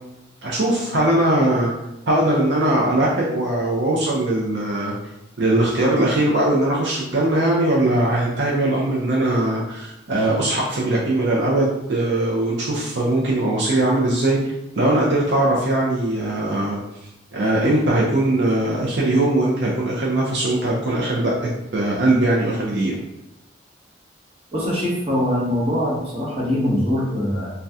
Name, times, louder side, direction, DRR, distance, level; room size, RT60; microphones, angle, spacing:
voice 1, 0.4-1.7 2.1-4.9 5.4-14.4 14.8-16.8 17.3-23.0, right 1 dB, 65° right, -4 dB, 0.5 m, -20 dB
voice 2, 24.5-27.5, left 1 dB, 30° right, -6 dB, 1.0 m, -22 dB
2.7 x 2.2 x 3.4 m, 0.90 s
head